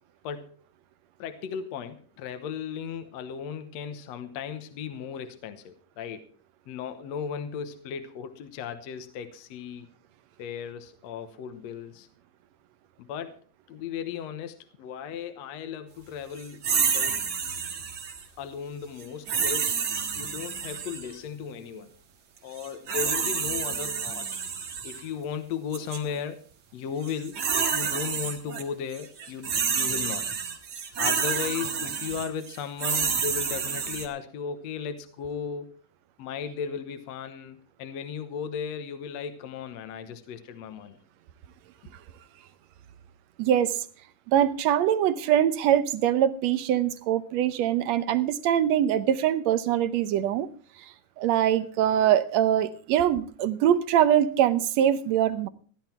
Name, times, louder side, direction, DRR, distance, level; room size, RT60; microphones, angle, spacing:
voice 1, 1.2-6.3 6.7-9.9 10.4-12.1 13.0-17.2 18.4-19.9 20.2-21.9 22.4-24.4 24.8-26.4 26.7-30.3 31.0-35.8 36.2-41.0, left 7 dB, 65° left, 9 dB, 2.0 m, -36 dB
sound 1, 16.6-18.2 19.3-21.1 22.6-25.0 25.7-26.0 27.0-28.6 28.9-34.1, right 6 dB, 50° right, 2.9 m, -29 dB
voice 2, 43.4-43.7 44.3-50.5 51.2-55.5, right 10 dB, 70° right, 14 dB, 1.7 m, -23 dB
16.0 x 11.0 x 4.5 m, 0.43 s
omnidirectional pair, 3.7 m